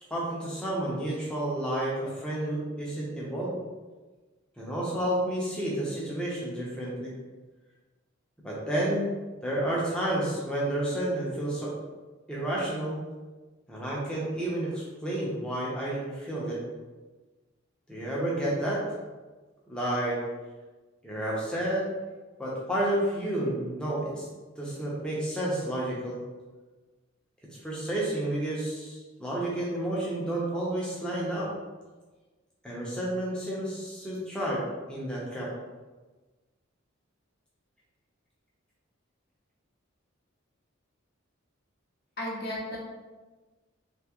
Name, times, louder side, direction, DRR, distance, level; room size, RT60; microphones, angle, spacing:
voice 1, 0.1-3.6 4.6-7.1 8.4-9.0 9.4-11.7 12.3-13.0 13.7-16.6 17.9-18.8 19.7-20.2 21.0-21.8 22.4-24.3 24.6-26.2 27.6-31.5 32.6-34.6 34.9-35.5, right 1 dB, 5° left, -6 dB, 0.8 m, -30 dB
voice 2, 42.2-42.8, left 1 dB, 50° left, -4 dB, 0.9 m, -34 dB
3.5 x 2.9 x 3.0 m, 1.3 s
head